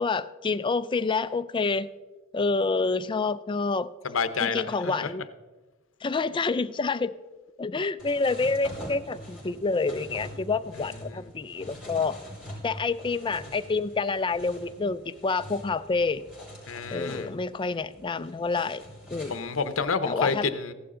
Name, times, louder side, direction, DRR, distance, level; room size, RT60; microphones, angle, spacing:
voice 1, 0.0-1.9 2.3-3.9 4.4-5.2 6.0-7.1 7.6-12.2 12.6-16.2 16.9-18.8 19.1-19.5 20.0-20.5, left 4 dB, 25° left, 13 dB, 0.4 m, -28 dB
voice 2, 4.0-5.1 11.1-11.2 16.7-17.3 19.3-20.7, left 5 dB, 75° left, 11 dB, 0.8 m, -29 dB
sound 1, 8.0-19.8, left 1 dB, 5° right, 4.6 m, -44 dB
15.5 x 11.0 x 3.8 m, 1.2 s
head